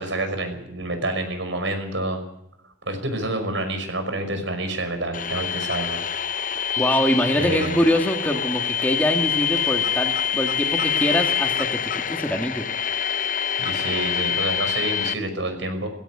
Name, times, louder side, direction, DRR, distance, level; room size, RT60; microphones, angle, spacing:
voice 1, 0.0-2.2 2.9-6.0 7.3-7.8 13.6-15.9, right 2 dB, 85° right, 7 dB, 5.8 m, -28 dB
sound 1, 5.1-15.1, left 8 dB, 45° left, 0.8 m, -25 dB
voice 2, 6.8-12.7, equal, 10° left, 4 dB, 1.9 m, -24 dB
17.0 x 17.0 x 9.6 m, 0.76 s
head